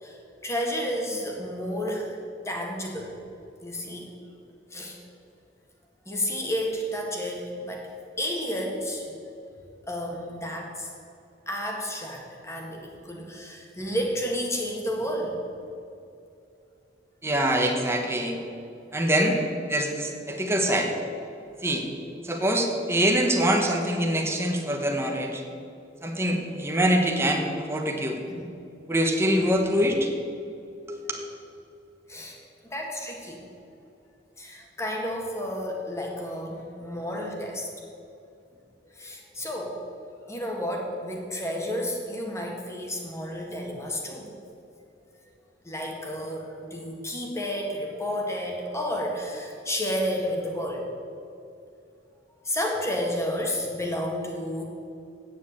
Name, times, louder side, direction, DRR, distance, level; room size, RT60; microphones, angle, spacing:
voice 1, 0.0-2.2 2.5-3.2 3.6-4.1 4.7-5.0 6.1-7.9 8.2-9.0 9.9-10.9 11.5-15.4 28.3-28.4 32.1-32.4 32.6-33.4 34.4-37.7 38.9-39.8 40.3-44.3 45.6-50.8 52.4-54.6, equal, 15° left, 0 dB, 1.8 m, -31 dB
voice 2, 17.2-18.4 18.9-19.4 19.7-20.9 21.6-21.9 22.2-25.4 26.0-28.2 28.9-30.1 30.9-31.2, equal, 15° right, 1 dB, 1.2 m, -24 dB
8.7 x 7.6 x 8.6 m, 2.6 s
head